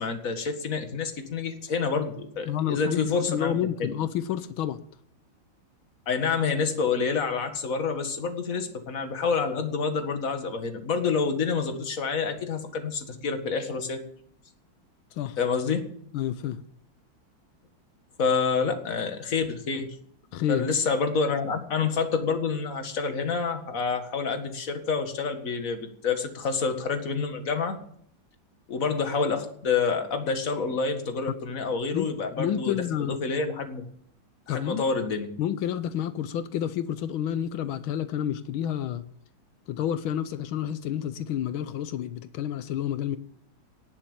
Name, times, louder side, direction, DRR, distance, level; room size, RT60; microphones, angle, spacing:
voice 1, 0.0-3.5 3.8-3.9 6.1-14.0 15.4-15.9 18.2-20.0 20.5-27.8 28.7-33.8 34.5-35.3, left 5 dB, 45° left, 6 dB, 2.1 m, -28 dB
voice 2, 2.5-4.8 15.1-15.4 16.1-16.6 20.3-20.7 31.9-32.1 32.4-33.2 34.5-34.8 35.4-39.0 39.7-43.2, left 10 dB, 90° left, 12 dB, 1.7 m, -29 dB
18.5 x 7.3 x 8.8 m, 0.66 s
omnidirectional pair, 2.2 m